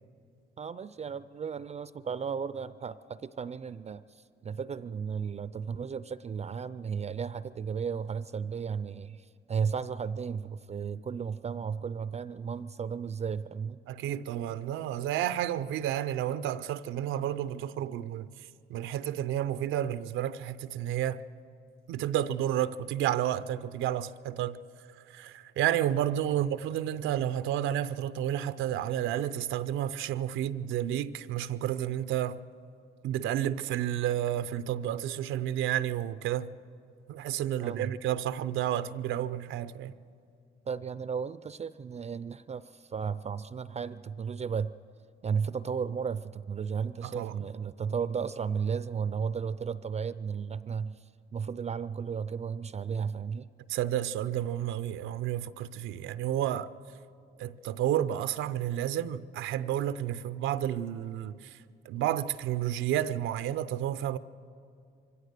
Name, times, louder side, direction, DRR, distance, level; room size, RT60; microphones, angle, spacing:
voice 1, 0.6-13.8 26.3-26.4 37.6-38.0 40.7-44.7 45.2-51.0 51.3-53.5, right 6 dB, 35° right, 0.4 m, -34 dB
voice 2, 13.9-18.3 18.7-21.2 21.9-24.6 25.1-32.4 33.0-36.5 37.1-39.9 47.0-47.3 53.7-56.7 57.4-61.6 61.9-64.2, right 11 dB, 90° right, 0.5 m, -31 dB
23.5 x 16.5 x 6.7 m
cardioid pair, 90°, 20 cm